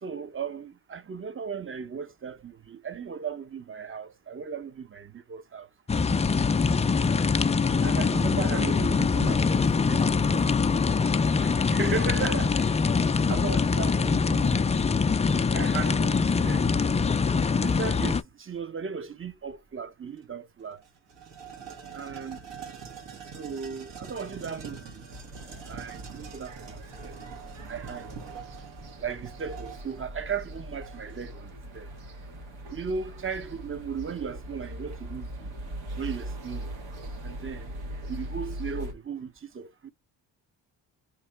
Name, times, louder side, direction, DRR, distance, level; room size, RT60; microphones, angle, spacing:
voice 1, 0.0-5.7 7.8-10.4 11.4-12.8 13.3-14.5 15.5-16.7 17.6-20.8 21.9-22.4 23.3-25.1 25.7-27.2 27.7-28.2 29.0-31.9 32.7-35.5 36.0-36.7 37.2-37.7 38.1-39.9, right 6 dB, 30° right, 0.7 m, -36 dB
sound 1, 5.9-18.2, left 5 dB, 15° left, 0.3 m, -24 dB
sound 2, 20.2-20.3 20.6-31.3, right 6 dB, 65° right, 1.4 m, -44 dB
sound 3, 25.1-38.9, right 1 dB, 85° right, 1.4 m, -40 dB
3.0 x 2.9 x 4.4 m
cardioid pair, 65°, 45 cm